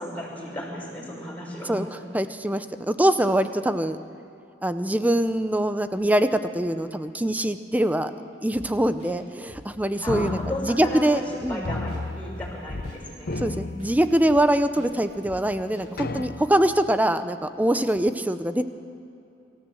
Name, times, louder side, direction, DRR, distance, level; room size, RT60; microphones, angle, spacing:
voice 1, 0.0-1.8 10.0-11.2 11.5-13.5, left 1 dB, 10° left, -5 dB, 5.7 m, -34 dB
voice 2, 2.1-4.0 4.6-8.1 8.4-11.7 13.4-18.6, right 1 dB, 10° right, 10 dB, 0.6 m, -23 dB
sound 1, 8.5-8.6 9.0-9.1 9.5-9.6 9.9-10.1 10.4-10.6 10.9-11.0 11.4-11.5 11.9-12.0 12.4-12.5 12.8-13.0 13.3-13.4 13.8-13.9 14.3-14.4 14.8-14.9 15.2-15.4 15.7-15.8, equal, 45° right, 6.7 m, -45 dB
sound 2, 10.1-11.3 11.7-13.0 13.2-14.5 15.1-15.2 16.0-16.8, left 2 dB, 55° left, 0.7 m, -33 dB
24.5 x 14.5 x 7.7 m, 2.8 s
head